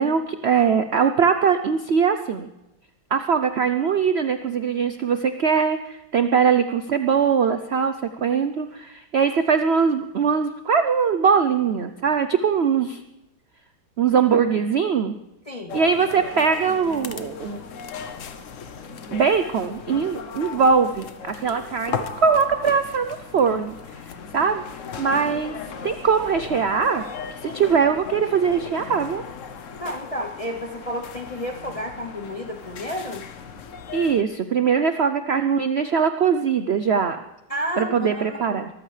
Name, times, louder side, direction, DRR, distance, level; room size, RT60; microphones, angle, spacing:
voice 1, 0.0-2.5 3.1-13.0 14.0-15.2 15.7-17.6 19.1-24.6 25.0-25.6 25.8-29.2 33.9-37.2 37.8-38.7, right 6 dB, 65° right, 9 dB, 0.6 m, -21 dB
voice 2, 15.5-15.8 27.4-27.7 29.8-33.3 37.5-38.7, equal, 35° left, 4 dB, 0.6 m, -31 dB
sound 1, 15.7-34.2, left 6 dB, 55° left, 1.1 m, -37 dB
23.0 x 14.0 x 3.3 m, 0.91 s
omnidirectional pair, 1.9 m